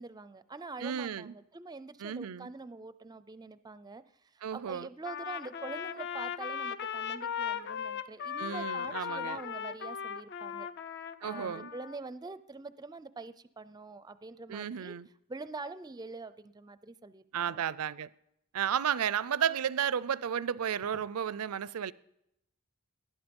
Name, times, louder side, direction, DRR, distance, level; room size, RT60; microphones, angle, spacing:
voice 1, 0.0-10.7 11.2-14.9 15.3-17.6 20.9-21.0, right 3 dB, 20° right, 0.5 m, -45 dB
voice 2, 0.8-1.3 2.0-2.5 4.4-4.9 8.4-9.4 11.2-11.7 14.5-15.1 17.3-18.1 18.5-21.9, right 8 dB, 75° right, 0.4 m, -33 dB
Trumpet, 5.0-12.0, left 8 dB, 50° left, 0.5 m, -38 dB
19.0 x 11.5 x 5.3 m
head